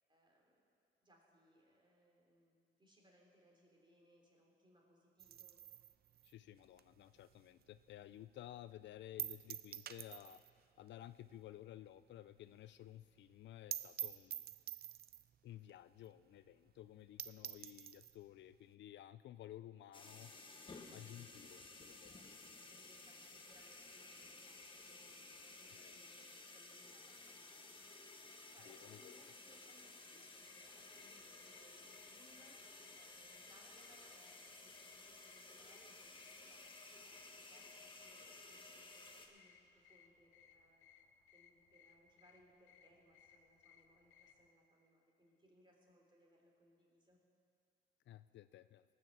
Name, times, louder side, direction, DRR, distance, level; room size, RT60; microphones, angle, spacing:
voice 1, 0.1-0.7 1.0-5.6 17.3-17.6 22.0-40.8 41.3-47.2, equal, 25° right, -1 dB, 3.3 m, -70 dB
sound 1, 5.2-7.8 8.2-8.3 8.6-8.7 9.2-10.6 10.9-11.0 11.3-11.4 11.8-11.9 12.1-12.2 12.5-12.6 12.9-13.0 13.3-13.4 13.7-15.3 16.0-16.1 16.5-16.6 16.9-17.0 17.2-18.2, right 10 dB, 50° right, 0.5 m, -47 dB
voice 2, 6.2-10.4 10.8-14.5 15.4-20.3 20.9-22.2 25.7-26.0 28.7-29.2 48.1-48.8, left 13 dB, 65° left, 14 dB, 0.4 m, -55 dB
sound 2, 19.9-39.3, left 3 dB, 25° left, 1.4 m, -56 dB
sound 3, 30.4-44.5, left 8 dB, 90° left, 0.8 m, -68 dB
18.5 x 6.4 x 7.3 m, 2.4 s
cardioid pair, 90°, 20 cm